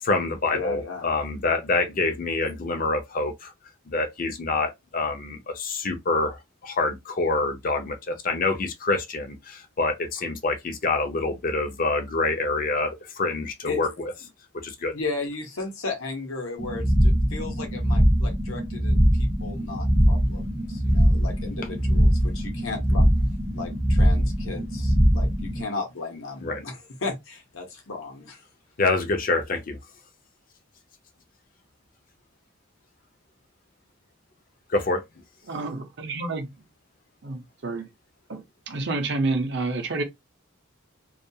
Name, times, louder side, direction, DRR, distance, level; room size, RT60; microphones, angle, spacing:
voice 1, 0.0-3.5 3.9-14.1 14.6-14.9 26.4-26.6 28.8-29.8 34.7-35.0, left 3 dB, 40° left, 0.5 m, -26 dB
voice 2, 0.5-1.1 13.7-13.8 14.9-23.1 23.5-28.4, left 3 dB, 80° left, 0.8 m, -35 dB
sound 1, 16.6-25.6, equal, 10° right, 0.4 m, -22 dB
voice 3, 35.5-36.6 37.2-37.9 38.3-40.0, right 3 dB, 55° right, 0.6 m, -29 dB
2.3 x 2.3 x 2.7 m
head